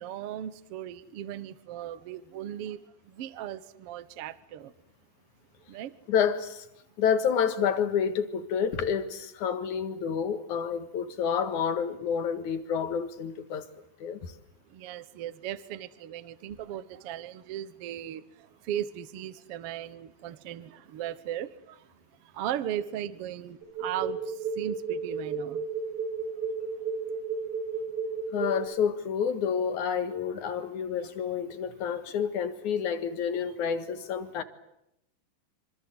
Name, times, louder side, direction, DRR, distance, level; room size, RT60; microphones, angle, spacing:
voice 1, 0.0-4.7 5.7-5.9 14.7-21.9 22.2-25.7, right 11 dB, 70° right, 1.4 m, -37 dB
voice 2, 6.1-6.7 7.0-13.7 14.0-14.3 28.3-34.4, left 7 dB, 60° left, 2.8 m, -29 dB
sound 1, 23.6-28.7, right 5 dB, 55° right, 6.4 m, -32 dB
26.5 x 26.0 x 7.9 m
omnidirectional pair, 4.2 m